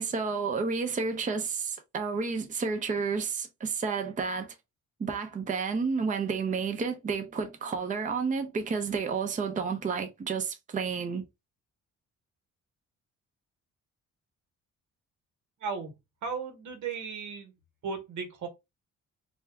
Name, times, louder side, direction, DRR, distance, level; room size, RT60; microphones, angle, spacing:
voice 1, 0.0-4.6 5.0-11.2, right 5 dB, 25° right, 0.6 m, -31 dB
voice 2, 15.6-15.9 16.2-17.5 17.8-18.5, right 5 dB, 75° right, 1.1 m, -35 dB
2.6 x 2.2 x 3.4 m
cardioid pair, 90°, 30 cm